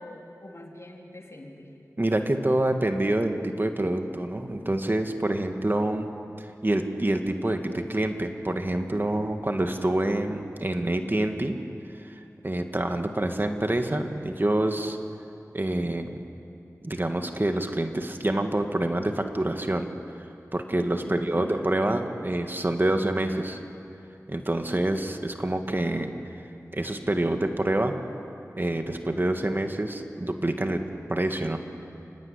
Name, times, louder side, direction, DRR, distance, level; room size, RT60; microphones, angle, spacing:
voice 1, 0.0-1.7 21.0-21.7, left 1 dB, 50° left, 0 dB, 3.9 m, -43 dB
voice 2, 2.0-6.1 6.4-11.6 12.0-15.0 15.5-16.2 16.8-19.9 20.5-23.6 24.3-26.1 26.7-27.9 28.6-30.8 31.1-31.6, right 1 dB, 35° right, 5 dB, 1.9 m, -27 dB
30.0 x 16.5 x 9.9 m, 2.7 s
wide cardioid pair, 50°, 6 cm